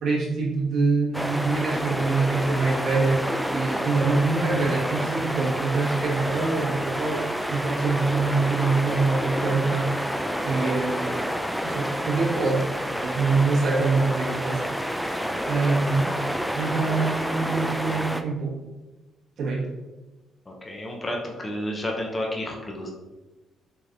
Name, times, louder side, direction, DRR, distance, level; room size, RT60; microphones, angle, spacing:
voice 1, 0.0-3.2 3.5-7.2 7.5-9.9 10.4-11.2 11.6-12.7 13.0-16.1 16.5-18.5 19.4-19.7, right 3 dB, 70° right, -5 dB, 1.2 m, -25 dB
sound 1, 1.1-18.2, equal, ahead, 0.3 m, -29 dB
voice 2, 20.5-22.9, left 1 dB, 20° left, 0 dB, 0.8 m, -32 dB
4.7 x 3.3 x 2.6 m, 1.1 s
cardioid pair, 90°, 0 cm